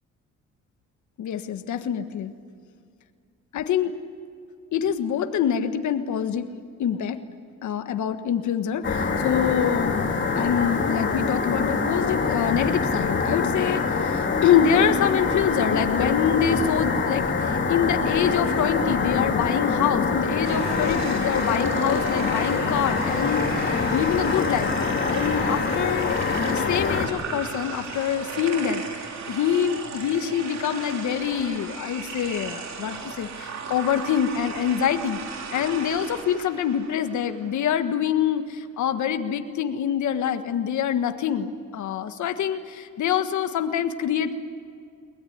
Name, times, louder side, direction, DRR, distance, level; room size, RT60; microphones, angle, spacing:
voice 1, 1.2-2.3 3.5-3.9 4.7-6.5 6.8-7.2 7.6-35.2 35.5-44.4, left 8 dB, 70° left, 8 dB, 1.6 m, -25 dB
sound 1, 8.8-27.1, left 4 dB, 40° left, 3.4 m, -25 dB
sound 2, 20.4-37.8, right 5 dB, 60° right, 3.3 m, -36 dB
22.0 x 19.5 x 9.9 m, 2.3 s
cardioid pair, 90°, 30 cm